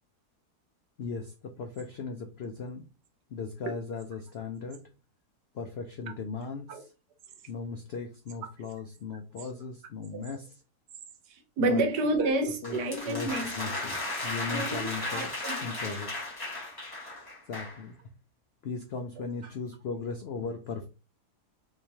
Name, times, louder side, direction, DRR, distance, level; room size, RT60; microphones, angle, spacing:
voice 1, 1.0-2.8 3.3-4.8 5.5-6.9 7.5-10.6 11.7-11.8 12.4-12.8 13.1-15.3 15.6-16.1 17.5-17.9 18.6-20.9, left 4 dB, 90° left, 0.5 m, -37 dB
voice 2, 11.3-13.7 14.5-16.0 19.2-19.5, right 2 dB, 85° right, 1.4 m, -30 dB
sound 1, 12.6-17.8, left 2 dB, 15° left, 1.2 m, -35 dB
3.6 x 3.1 x 2.7 m
omnidirectional pair, 1.7 m